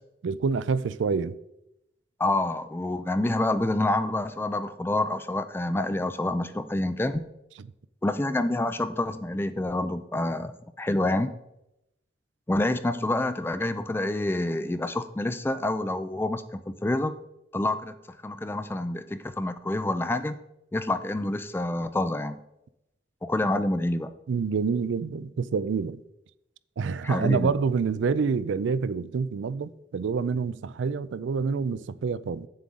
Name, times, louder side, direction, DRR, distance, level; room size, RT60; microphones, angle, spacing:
voice 1, 0.2-1.4 7.6-7.7 24.3-26.0 26.8-32.5, right 5 dB, 90° right, 0.4 m, -27 dB
voice 2, 2.2-7.2 8.0-11.3 12.5-17.1 17.5-20.4 20.7-22.4 23.2-24.1 27.0-27.5, left 1 dB, 10° left, 0.3 m, -27 dB
8.4 x 7.4 x 3.7 m
head